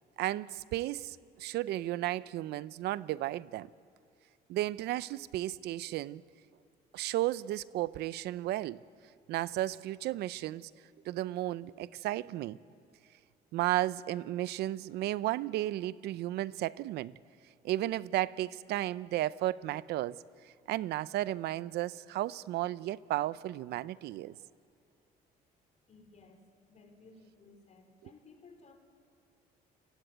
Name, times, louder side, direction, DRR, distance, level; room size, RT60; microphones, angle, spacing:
voice 1, 0.2-3.7 4.5-6.2 6.9-8.8 9.3-10.7 11.0-12.6 13.5-17.1 17.6-24.3, right 15 dB, 80° right, 0.7 m, -34 dB
voice 2, 25.9-28.8, left 3 dB, 45° left, 4.7 m, -58 dB
28.5 x 23.0 x 9.2 m
cardioid pair, 110°, 17 cm